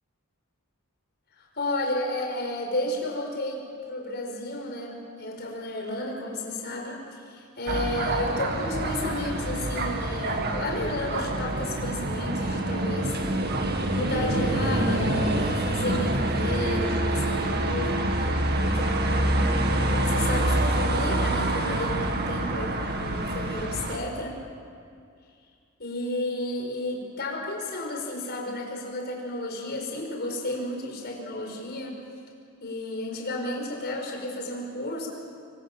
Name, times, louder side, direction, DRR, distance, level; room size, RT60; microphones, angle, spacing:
voice 1, 1.4-13.2 13.9-18.1 18.5-24.4 25.8-32.0 32.6-35.1, left 1 dB, 50° left, 0 dB, 5.3 m, -32 dB
sound 1, 7.7-24.0, right 1 dB, 50° right, 2.2 m, -26 dB
27.0 x 23.5 x 7.5 m, 2.3 s
head